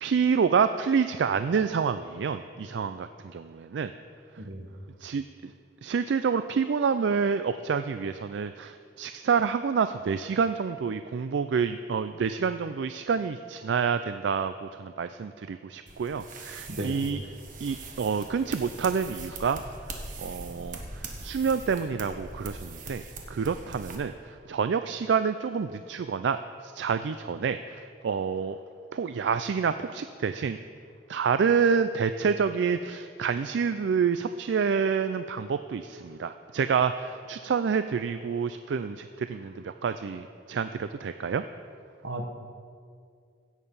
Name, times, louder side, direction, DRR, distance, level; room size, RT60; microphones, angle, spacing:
voice 1, 0.0-3.9 5.0-5.5 5.8-17.2 17.6-19.6 19.9-23.0 23.3-28.6 28.9-30.6 31.1-41.4, right 6 dB, 70° right, 10 dB, 0.4 m, -28 dB
voice 2, 4.4-4.7 16.7-17.0 42.0-42.3, right 1 dB, 90° right, 5 dB, 1.2 m, -34 dB
sound 1, 15.9-23.9, right 3 dB, 50° right, 1.4 m, -42 dB
16.0 x 7.3 x 5.5 m, 2.3 s
head